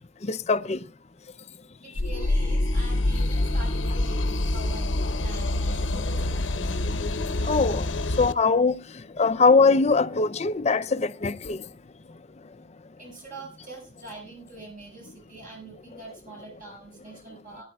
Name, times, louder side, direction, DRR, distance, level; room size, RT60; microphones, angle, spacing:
voice 1, 0.2-0.8 5.9-6.2 7.4-7.9 8.2-11.6, left 4 dB, 35° left, 0.5 m, -22 dB
voice 2, 1.8-4.9 5.2-7.0 13.0-17.6, right 2 dB, 45° right, 5.8 m, -44 dB
sound 1, 2.0-8.3, left 1 dB, 85° left, 0.9 m, -26 dB
22.0 x 10.5 x 2.3 m
head